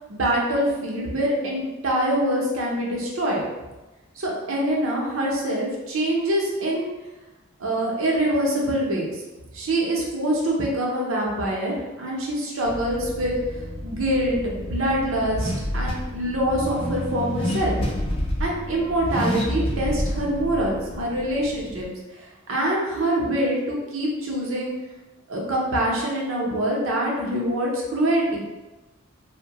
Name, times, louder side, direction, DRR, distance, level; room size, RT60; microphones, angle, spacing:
voice 1, 0.1-3.4 4.2-6.9 7.6-9.2 9.5-17.8 18.4-24.7 25.3-28.4, right 1 dB, 75° right, -2 dB, 0.6 m, -25 dB
Car / Accelerating revving vroom, 12.6-21.8, left 1 dB, 25° left, 0.3 m, -29 dB
2.6 x 2.1 x 2.8 m, 1.1 s
head